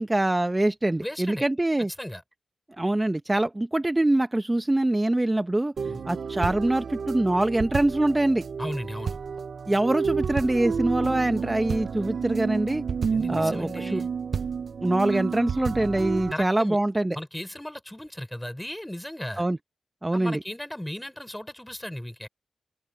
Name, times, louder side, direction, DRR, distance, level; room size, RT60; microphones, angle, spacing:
voice 1, 0.0-1.9 2.8-5.7 6.1-8.4 9.7-12.8 13.3-14.0 14.8-17.2 19.4-19.6 20.0-20.4, right 1 dB, 20° right, 0.8 m, -24 dB
voice 2, 1.0-1.5 2.0-2.2 5.9-6.0 8.6-9.2 13.1-14.1 16.3-16.8 17.1-19.4 20.1-22.3, left 1 dB, 10° left, 5.3 m, -36 dB
sound 1, 5.8-16.3, right 6 dB, 70° right, 0.5 m, -31 dB
open air
cardioid pair, 60°, 0 cm